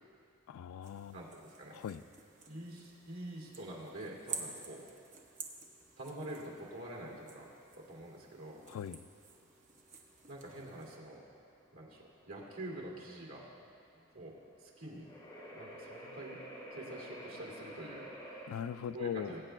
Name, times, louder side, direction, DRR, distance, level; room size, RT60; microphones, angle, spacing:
voice 1, 0.5-1.2 1.7-2.0 8.7-9.0 18.5-19.3, left 8 dB, 90° left, 13 dB, 0.3 m, -40 dB
sound 1, 0.6-18.5, equal, 15° left, 3.0 m, -53 dB
sound 2, 0.8-11.0, right 4 dB, 35° right, 0.8 m, -50 dB
voice 2, 1.1-1.8 2.5-4.9 6.0-7.5 7.7-8.6 10.3-11.3 11.7-15.1 15.5-16.4 16.7-18.1 18.9-19.4, right 1 dB, 85° right, -3 dB, 2.4 m, -46 dB
20.5 x 8.8 x 2.3 m, 2.3 s
head